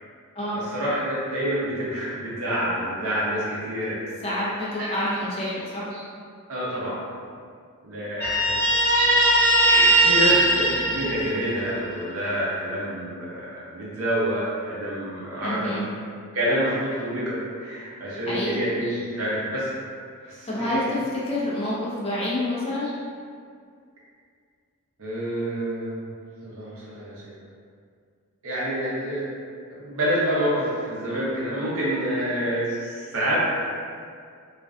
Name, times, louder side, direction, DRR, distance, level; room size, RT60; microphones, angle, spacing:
voice 1, 0.5-4.0 4.8-4.9 5.9-6.0 6.5-7.0 7.8-8.6 9.6-15.8 16.3-19.7 20.3-20.8 25.0-26.1 26.4-27.3 28.4-29.3 29.7-33.4, equal, 65° right, -7 dB, 0.7 m, -27 dB
voice 2, 4.2-5.9 10.2-10.3 15.4-15.8 18.3-18.6 20.4-22.9, left 1 dB, 25° left, -7 dB, 0.5 m, -28 dB
Guitar, 8.2-11.8, right 1 dB, 50° left, 0.9 m, -19 dB
2.4 x 2.2 x 2.4 m, 2.2 s
head